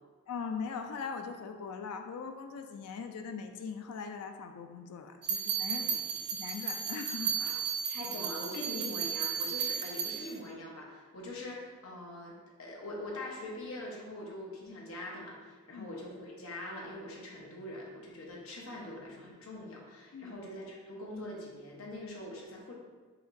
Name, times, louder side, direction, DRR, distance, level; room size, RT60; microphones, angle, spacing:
voice 1, 0.3-5.9 6.3-8.1 15.7-15.9 20.1-20.4, left 5 dB, 90° left, 6 dB, 0.4 m, -41 dB
sound 1, 5.2-10.3, right 7 dB, 45° right, 0.5 m, -34 dB
voice 2, 5.7-6.1 7.9-22.7, left 1 dB, 75° left, -2 dB, 0.9 m, -43 dB
5.0 x 2.9 x 2.5 m, 1.5 s
head